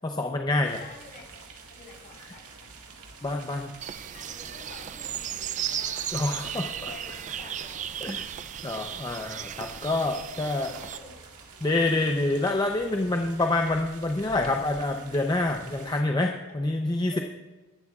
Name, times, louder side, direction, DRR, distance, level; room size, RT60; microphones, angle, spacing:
voice 1, 0.0-0.8 3.2-3.7 6.1-6.7 8.0-8.2 8.6-10.7 11.6-17.2, left 2 dB, 20° left, 3 dB, 0.6 m, -27 dB
sound 1, 0.6-16.0, right 4 dB, 90° right, 1.8 m, -48 dB
voice 2, 0.8-2.7 4.1-6.1 6.4-8.0 10.3-11.7 16.5-16.6 17.1-17.2, left 3 dB, 40° left, -2 dB, 3.9 m, -49 dB
sound 2, 3.8-11.0, right 10 dB, 35° right, 0.4 m, -35 dB
23.5 x 11.5 x 2.4 m, 1.2 s
head